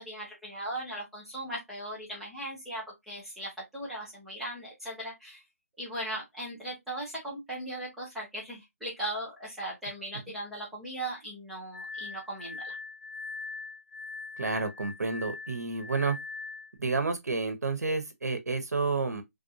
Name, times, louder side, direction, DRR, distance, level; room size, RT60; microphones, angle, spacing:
voice 1, 0.0-5.4 5.8-12.8, right 1 dB, ahead, 0.6 m, -38 dB
Glass, 11.7-16.8, left 4 dB, 70° left, 0.9 m, -41 dB
voice 2, 14.4-16.2 16.8-19.2, right 4 dB, 85° right, 1.0 m, -30 dB
3.4 x 2.6 x 2.7 m
hypercardioid pair, 170°, 9 cm